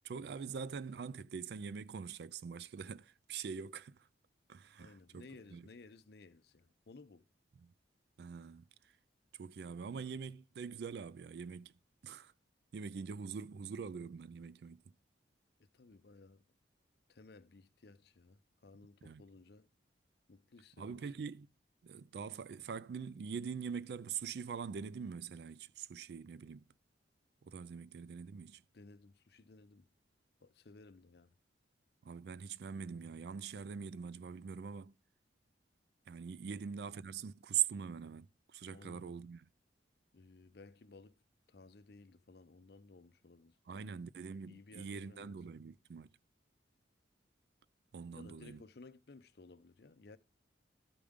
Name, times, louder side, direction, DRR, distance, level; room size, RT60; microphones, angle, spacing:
voice 1, 0.0-4.1 4.5-5.3 5.5-5.7 7.6-7.7 8.2-8.7 9.4-11.7 12.0-12.3 12.7-14.8 19.0-19.2 20.8-21.5 21.8-26.6 27.4-28.6 32.0-34.9 36.1-39.4 43.7-46.1 47.9-48.6, right 7 dB, 60° right, 0.3 m, -43 dB
voice 2, 4.8-7.3 15.7-16.4 17.1-19.7 20.3-21.0 28.7-29.9 30.4-31.3 38.7-39.3 40.1-41.2 41.5-44.0 44.4-45.4 48.1-50.2, left 3 dB, 55° left, 0.6 m, -58 dB
12.5 x 5.0 x 3.5 m
head